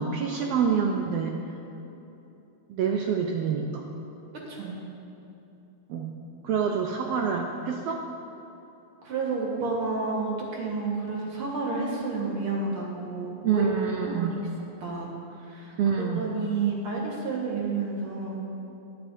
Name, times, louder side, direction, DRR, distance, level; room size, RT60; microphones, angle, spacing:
voice 1, 0.0-1.3 2.7-3.8 5.9-6.1 6.4-8.0 13.4-14.4 15.8-16.2, right 6 dB, 80° right, 1 dB, 1.4 m, -26 dB
voice 2, 4.5-4.8 9.0-13.6 14.1-14.5 14.8-15.1 15.4-15.7 16.2-18.4, right 4 dB, 50° right, -3 dB, 2.1 m, -30 dB
20.5 x 7.7 x 2.7 m, 2.9 s
omnidirectional pair, 3.4 m